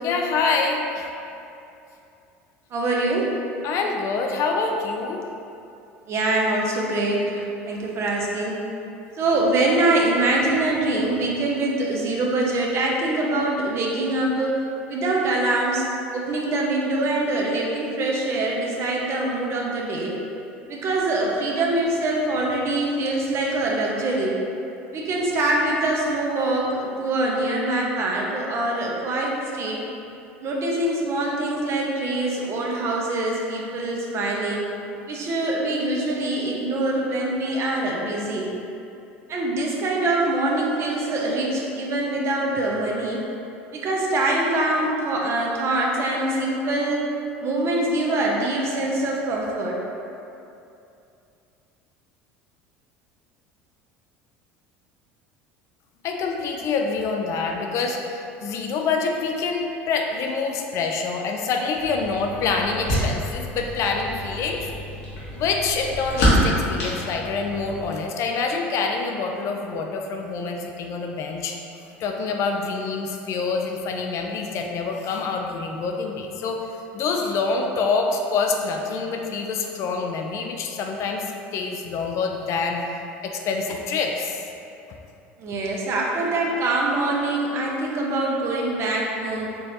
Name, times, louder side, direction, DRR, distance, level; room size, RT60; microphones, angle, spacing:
voice 1, 0.0-1.1 3.6-5.2 56.0-64.6 65.3-71.6 72.0-76.6 76.9-81.2 81.5-82.8 83.2-84.4, left 4 dB, 50° left, 2 dB, 0.4 m, -26 dB
voice 2, 2.7-3.3 6.1-8.6 9.2-14.6 14.9-15.9 16.1-20.2 20.7-24.4 24.9-29.8 30.4-34.7 35.1-38.5 39.3-43.2 43.7-47.0 47.4-49.8 85.4-89.5, right 2 dB, 45° right, -2 dB, 0.7 m, -24 dB
sound 1, 61.7-67.9, equal, 75° left, 1.3 m, -27 dB
4.5 x 3.1 x 2.7 m, 2.7 s
hypercardioid pair, 75°, 6 cm